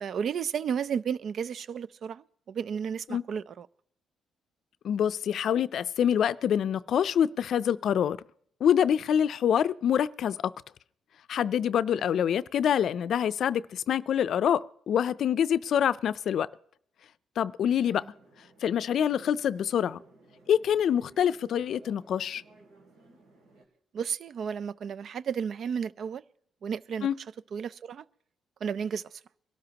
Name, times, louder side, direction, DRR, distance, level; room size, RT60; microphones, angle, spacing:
voice 1, 0.0-3.7 12.0-12.1 23.9-26.2 26.6-27.1 27.5-28.0 28.6-29.0, right 7 dB, 60° right, 0.4 m, -33 dB
voice 2, 4.8-8.2 8.6-10.4 11.3-16.5 17.4-18.0 18.6-20.0 20.5-22.4 27.0-27.1, left 9 dB, 65° left, 0.4 m, -26 dB
sound 1, 18.1-23.6, right 2 dB, 90° right, 2.7 m, -57 dB
23.0 x 12.5 x 2.9 m
cardioid pair, 90°, 0 cm